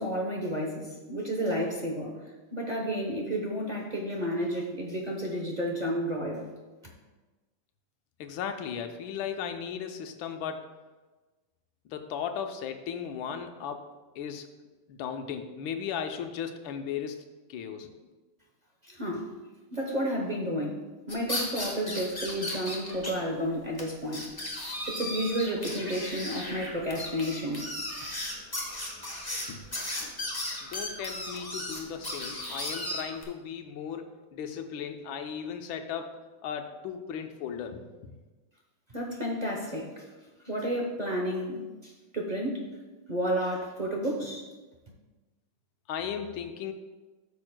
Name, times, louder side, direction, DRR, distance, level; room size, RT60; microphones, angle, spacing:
voice 1, 0.0-2.2 2.5-6.5 18.8-19.3 19.7-20.8 21.1-24.3 24.9-27.7 38.9-40.0 40.4-42.6 43.1-44.4, equal, 40° right, -1 dB, 0.6 m, -31 dB
voice 2, 8.2-10.6 11.9-13.9 14.2-14.5 14.9-17.2 17.5-17.9 29.5-29.6 30.6-36.1 36.4-38.1 45.9-46.7, left 7 dB, 80° left, 6 dB, 1.5 m, -36 dB
sound 1, 21.1-23.1 23.4-23.5 23.8-23.9 24.1-33.2, left 1 dB, 15° left, 0.9 m, -35 dB
13.0 x 6.2 x 2.2 m, 1.2 s
omnidirectional pair, 2.1 m